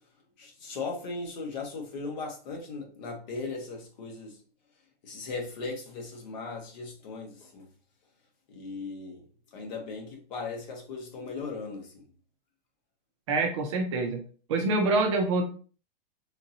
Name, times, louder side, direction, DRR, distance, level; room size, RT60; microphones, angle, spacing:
voice 1, 0.4-4.4 5.0-7.7 8.5-9.2 9.5-11.9, left 4 dB, 50° left, 1.2 m, -38 dB
voice 2, 13.3-14.2 14.5-15.4, right 3 dB, 30° right, 0.5 m, -26 dB
3.6 x 2.8 x 2.7 m
hypercardioid pair, 160°, 29 cm